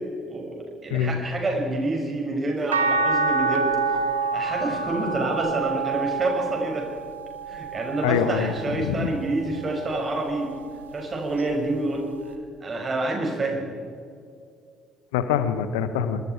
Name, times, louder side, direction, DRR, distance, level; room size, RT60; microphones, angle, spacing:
voice 1, 0.8-6.9 7.5-10.5 10.9-12.1 12.6-13.7, right 2 dB, 30° right, 1 dB, 6.6 m, -28 dB
sound 1, 2.7-9.0 9.6-10.9 12.3-12.4, right 4 dB, 80° right, 1.0 m, -28 dB
voice 2, 8.0-9.1 15.1-16.2, left 8 dB, 70° left, 11 dB, 1.3 m, -25 dB
25.5 x 23.0 x 4.8 m, 2.4 s
figure-of-eight pair, 50°, 0 cm